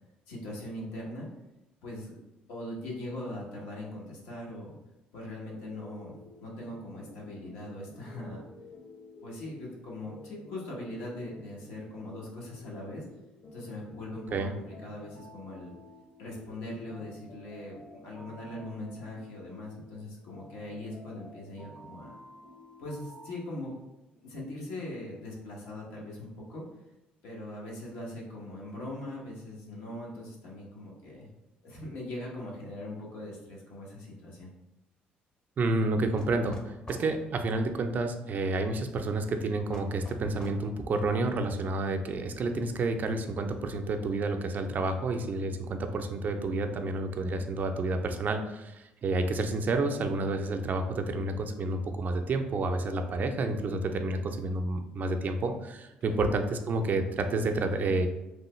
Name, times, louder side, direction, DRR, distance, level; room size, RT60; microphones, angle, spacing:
voice 1, 0.3-1.3 1.8-2.2 2.5-4.8 5.1-8.4 9.2-13.0 13.5-15.7 16.2-22.1 22.8-23.7 24.2-26.6 27.2-31.3 31.6-34.5 56.1-56.3, left 1 dB, 80° left, -3 dB, 0.9 m, -41 dB
sound 1, 5.5-23.3, left 1 dB, 55° left, 1.0 m, -52 dB
voice 2, 35.6-58.1, right 2 dB, 50° right, 6 dB, 0.4 m, -30 dB
sound 2, 36.2-37.1 39.7-40.6, equal, 20° left, 0.6 m, -45 dB
3.1 x 2.2 x 3.0 m, 0.96 s
supercardioid pair, 70°, 4 cm